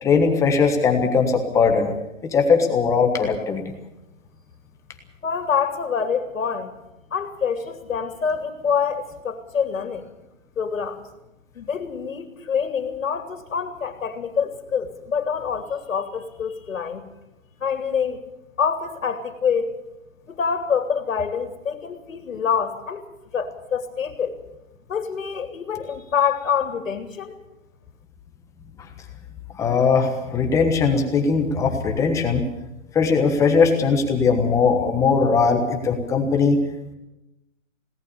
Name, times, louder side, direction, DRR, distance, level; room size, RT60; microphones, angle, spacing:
voice 1, 0.0-1.9 2.2-3.7 29.6-32.4 32.9-36.6, left 5 dB, 10° left, 4 dB, 1.2 m, -19 dB
voice 2, 5.2-6.7 7.1-10.1 10.6-11.0 11.5-17.0 17.6-18.2 18.6-19.8 20.3-23.1 23.3-24.3 24.9-27.4, left 6 dB, 75° left, 6 dB, 2.9 m, -26 dB
21.0 x 18.0 x 6.9 m, 0.94 s
hypercardioid pair, 165°, 39 cm